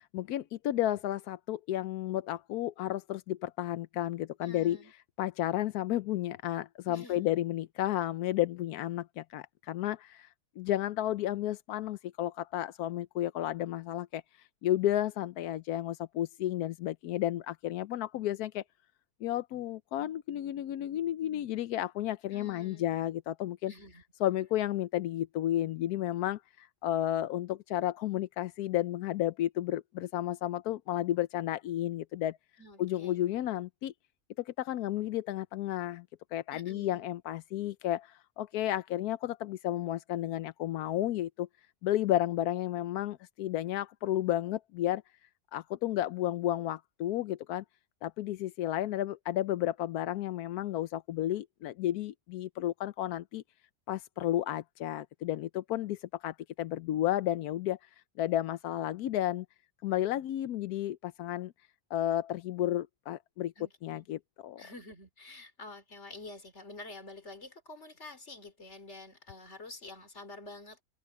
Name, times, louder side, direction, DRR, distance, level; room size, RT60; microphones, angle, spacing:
voice 1, 0.1-4.8 5.2-10.3 10.6-14.2 14.6-18.6 19.2-23.7 24.2-32.4 32.8-33.9 34.4-36.0 36.3-41.5 41.8-45.0 45.5-47.6 48.0-53.4 53.9-57.8 58.2-59.5 59.8-61.5 61.9-63.5 63.8-64.6, left 13 dB, 90° left, 1.2 m, -32 dB
voice 2, 4.4-4.9 6.9-7.3 22.3-22.9 23.7-24.0 32.6-33.2 36.5-37.1 63.6-64.1 64.6-70.8, left 2 dB, 50° left, 3.4 m, -48 dB
open air
omnidirectional pair, 1.6 m